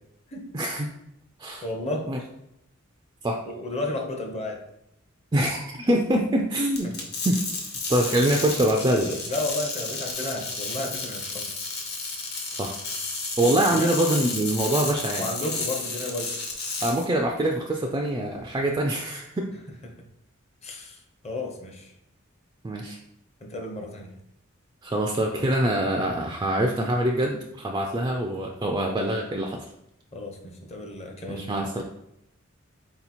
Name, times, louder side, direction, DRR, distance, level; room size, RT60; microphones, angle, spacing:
voice 1, 0.5-0.9 1.4-1.7 2.1-2.2 3.2-3.4 5.3-6.9 7.2-7.4 7.9-9.2 12.6-12.8 13.4-15.2 16.8-19.5 22.6-23.0 24.8-29.7 31.3-31.8, right 1 dB, 20° right, 2 dB, 0.3 m, -24 dB
voice 2, 1.6-2.1 3.5-4.6 6.8-6.9 9.3-11.5 13.4-13.9 15.1-16.3 20.6-21.9 23.4-24.1 30.1-31.7, left 2 dB, 30° left, 2 dB, 0.7 m, -33 dB
sound 1, 6.7-17.0, left 3 dB, 50° left, 1.0 m, -32 dB
4.0 x 2.9 x 4.1 m, 0.81 s
head